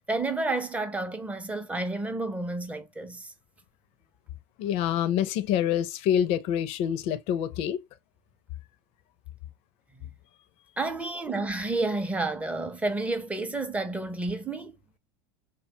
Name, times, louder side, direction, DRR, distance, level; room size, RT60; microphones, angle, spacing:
voice 1, 0.0-3.3 10.0-10.1 10.8-14.8, right 2 dB, 10° right, 0.5 m, -30 dB
voice 2, 4.6-7.8, left 10 dB, 50° left, 0.4 m, -26 dB
2.8 x 2.1 x 2.7 m
supercardioid pair, 115°, 13 cm